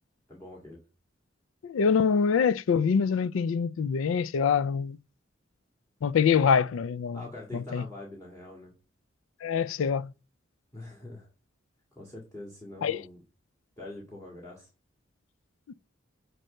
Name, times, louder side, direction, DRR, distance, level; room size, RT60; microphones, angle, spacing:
voice 1, 0.3-0.8 7.1-8.7 10.7-11.3 11.9-13.2 13.8-14.7, left 1 dB, 15° left, 1.9 m, -44 dB
voice 2, 1.6-5.0 6.0-7.2 7.5-7.9 9.4-10.1 12.8-13.0 15.7-15.8, left 6 dB, 90° left, 0.4 m, -25 dB
7.6 x 3.3 x 6.3 m
head